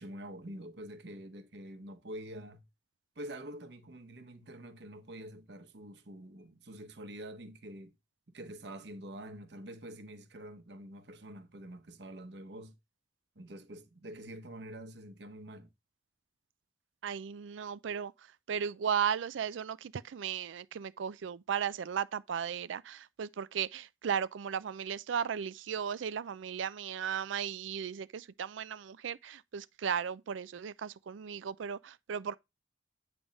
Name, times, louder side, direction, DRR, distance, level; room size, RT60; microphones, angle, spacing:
voice 1, 0.0-2.7 3.2-7.9 8.3-12.7 13.3-15.7, right 1 dB, 60° right, 1.0 m, -46 dB
voice 2, 17.0-32.4, right 7 dB, 85° right, 0.4 m, -36 dB
8.6 x 3.4 x 5.2 m
head